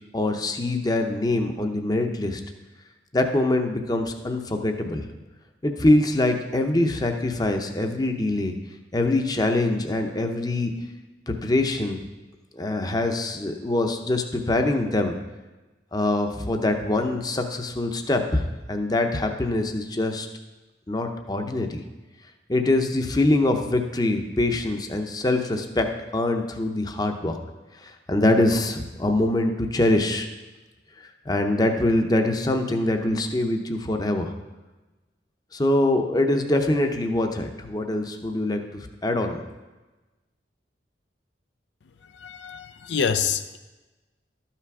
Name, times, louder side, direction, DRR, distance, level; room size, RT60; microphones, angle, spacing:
voice 1, 0.1-2.4 3.1-5.1 5.6-8.6 8.9-10.7 11.3-12.0 12.6-15.2 15.9-18.4 18.7-20.3 20.9-21.8 22.5-27.3 28.1-30.3 31.3-34.3 35.5-38.6 39.0-39.4, left 2 dB, 20° left, 5 dB, 0.7 m, -24 dB
voice 2, 42.2-43.6, left 6 dB, 80° left, 10 dB, 0.4 m, -26 dB
12.5 x 5.8 x 4.8 m, 1.1 s
head